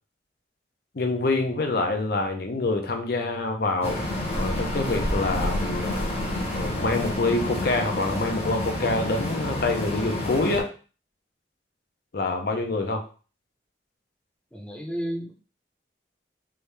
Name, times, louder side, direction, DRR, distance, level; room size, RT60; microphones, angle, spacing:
voice 1, 0.9-4.0 4.3-6.1 6.5-10.7 12.1-13.0, left 2 dB, 60° left, 3 dB, 0.6 m, -26 dB
sound 1, 3.8-10.6, left 1 dB, 35° left, 0.9 m, -29 dB
voice 2, 14.5-15.3, equal, 5° left, -1 dB, 0.7 m, -33 dB
3.4 x 2.7 x 3.3 m, 0.37 s
head